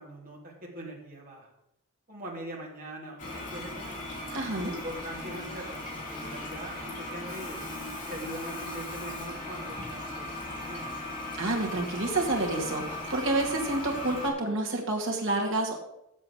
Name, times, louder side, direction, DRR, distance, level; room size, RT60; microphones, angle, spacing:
voice 1, 0.0-1.5 2.1-4.0 4.6-7.6 8.1-10.8, right 1 dB, 40° right, -3 dB, 3.0 m, -42 dB
Toilet flush, 3.2-14.3, left 1 dB, 35° left, 2.7 m, -38 dB
voice 2, 4.3-4.7 11.4-15.8, right 2 dB, 60° right, 0 dB, 2.3 m, -29 dB
7.7 x 7.3 x 7.5 m, 0.82 s
head